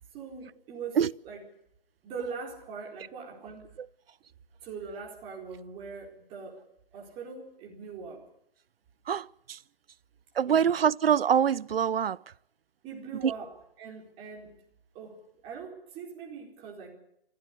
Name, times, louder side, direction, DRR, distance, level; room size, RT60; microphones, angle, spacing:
voice 1, 0.1-1.0 1.2-1.4 2.0-3.7 4.6-6.6 6.9-8.2 10.4-10.7 12.8-14.5 14.9-16.9, right 5 dB, 20° right, 4.5 m, -41 dB
voice 2, 9.1-9.6 10.4-12.2 13.2-13.3, right 8 dB, 80° right, 0.7 m, -25 dB
26.0 x 15.5 x 6.8 m
hypercardioid pair, 155°, 29 cm